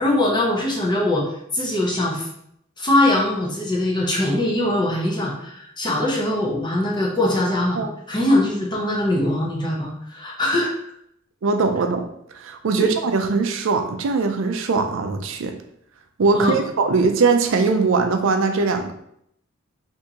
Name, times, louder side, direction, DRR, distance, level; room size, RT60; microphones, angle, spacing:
voice 1, 0.0-2.3 2.8-10.7 12.8-12.9 16.3-16.6, left 1 dB, 20° left, -3 dB, 0.7 m, -22 dB
voice 2, 11.4-12.0 12.3-15.5 16.2-18.9, right 4 dB, 65° right, 5 dB, 0.4 m, -21 dB
3.5 x 2.7 x 2.8 m, 0.73 s
head